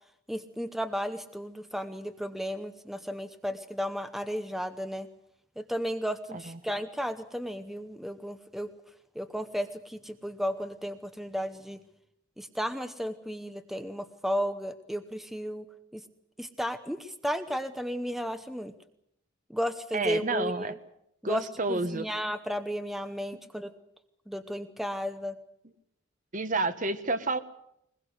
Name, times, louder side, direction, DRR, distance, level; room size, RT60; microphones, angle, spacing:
voice 1, 0.3-5.1 5.6-8.7 9.1-11.8 12.4-15.7 15.9-16.0 16.4-18.7 19.5-20.7 21.2-23.7 24.3-25.4, equal, ahead, 9 dB, 0.9 m, -34 dB
voice 2, 19.9-20.7 21.2-22.1 26.3-27.4, right 3 dB, 40° right, 11 dB, 1.4 m, -30 dB
22.5 x 21.0 x 7.9 m, 0.75 s
head